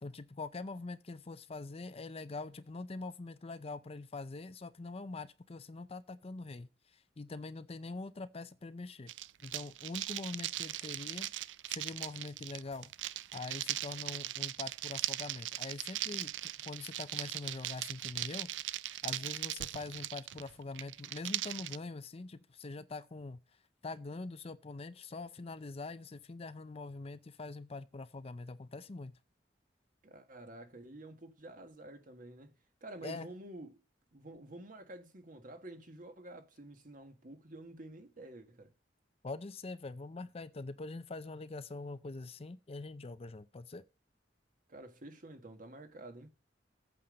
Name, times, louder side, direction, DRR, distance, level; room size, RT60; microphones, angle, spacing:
voice 1, 0.0-6.7 7.2-9.1 9.4-11.3 11.7-12.9 13.3-18.5 19.0-23.4 23.8-29.1 33.0-33.3 39.2-43.8, left 3 dB, 35° left, 0.5 m, -44 dB
sound 1, 9.1-21.8, right 14 dB, 85° right, 0.4 m, -39 dB
voice 2, 30.0-32.5 32.8-33.8 34.1-38.7 44.7-46.3, right 1 dB, 50° right, 1.6 m, -49 dB
8.6 x 7.0 x 5.2 m
head